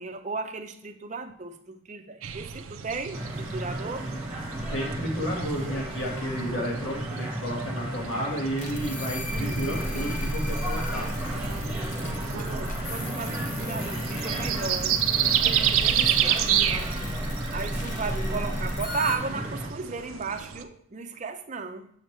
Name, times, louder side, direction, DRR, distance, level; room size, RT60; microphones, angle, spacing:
voice 1, 0.0-4.1 9.3-9.6 12.4-15.0 15.3-16.7 17.5-21.9, right 4 dB, 35° right, 6 dB, 0.5 m, -35 dB
sound 1, 2.2-20.6, right 10 dB, 85° right, 0.5 m, -31 dB
sound 2, 3.1-19.7, right 1 dB, 5° right, 1.3 m, -34 dB
voice 2, 4.7-11.1, equal, 80° left, -3 dB, 1.6 m, -32 dB
sound 3, 8.6-19.2, equal, 35° left, 0.8 m, -34 dB
7.2 x 5.2 x 3.1 m, 0.68 s
head